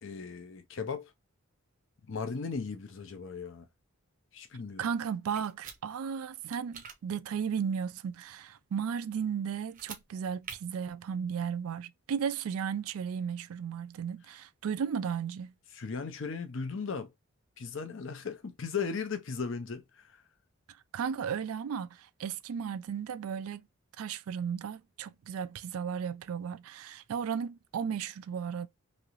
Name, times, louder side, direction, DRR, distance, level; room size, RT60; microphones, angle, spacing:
voice 1, 0.0-1.1 2.1-3.6 4.3-4.9 15.7-17.1 17.6-20.2, left 5 dB, 60° left, 0.6 m, -37 dB
voice 2, 4.8-15.5 20.9-23.6 24.0-28.7, right 7 dB, 80° right, 0.3 m, -35 dB
sound 1, 5.4-5.8 6.5-7.0 9.7-10.0 10.4-10.6, right 6 dB, 40° right, 0.6 m, -44 dB
3.1 x 2.8 x 2.5 m
head